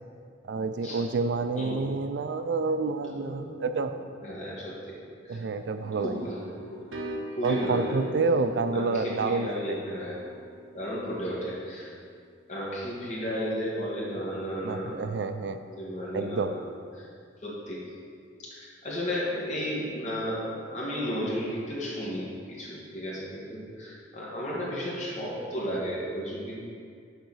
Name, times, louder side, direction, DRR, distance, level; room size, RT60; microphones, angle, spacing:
voice 1, 0.5-3.9 5.3-6.2 7.4-9.8 14.6-15.6 16.1-16.5, right 4 dB, 65° right, 9 dB, 0.4 m, -28 dB
voice 2, 3.0-3.9 4.2-5.0 5.2-5.4 6.0-6.5 6.8-8.0 8.7-10.2 10.7-11.9 12.5-15.0 15.7-16.7 17.0-17.1 17.4-17.8 18.4-26.6, equal, 40° left, -7 dB, 2.0 m, -34 dB
sound 1, 5.8-11.5, right 1 dB, 85° right, 0.8 m, -39 dB
6.6 x 4.6 x 6.3 m, 2.2 s
head